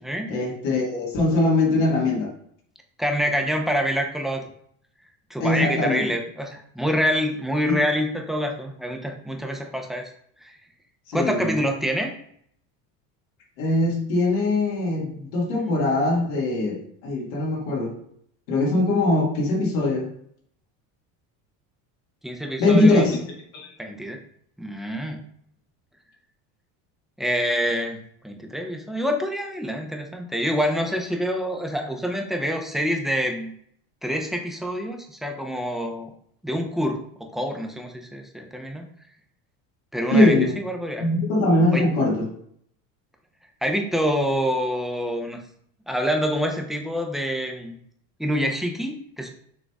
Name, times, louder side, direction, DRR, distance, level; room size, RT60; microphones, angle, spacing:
voice 1, 0.3-2.3 5.4-6.0 11.1-11.6 13.6-18.0 18.5-20.1 22.6-23.2 23.5-23.7 40.1-40.6 41.0-42.3, left 2 dB, 80° left, -2 dB, 1.9 m, -21 dB
voice 2, 3.0-4.4 5.3-10.0 10.4-10.5 11.1-12.1 22.2-23.2 23.8-24.2 24.6-25.2 27.2-28.0 28.2-33.5 34.0-36.1 36.4-38.9 39.9-41.0 41.7-41.9 43.6-45.4 45.9-47.8 48.2-49.3, equal, ahead, 2 dB, 0.7 m, -26 dB
6.4 x 3.2 x 2.3 m, 0.66 s
supercardioid pair, 100°, 41 cm